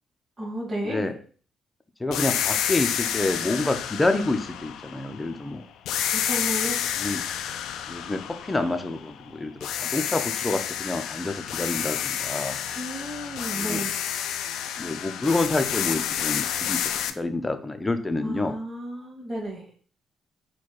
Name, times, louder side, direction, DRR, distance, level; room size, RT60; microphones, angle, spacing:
voice 1, 0.4-1.1 6.1-6.8 12.7-14.0 18.2-19.7, right 1 dB, 15° right, -6 dB, 1.8 m, -33 dB
voice 2, 2.0-5.6 7.0-7.2 7.9-9.5 9.8-12.6 13.6-13.8 14.8-16.9 17.1-18.5, left 2 dB, 15° left, 8 dB, 0.6 m, -28 dB
sound 1, 2.1-5.4 5.9-9.2 9.6-17.1, left 9 dB, 85° left, 0.3 m, -29 dB
4.2 x 2.3 x 4.6 m, 0.43 s
cardioid pair, 90°, 0 cm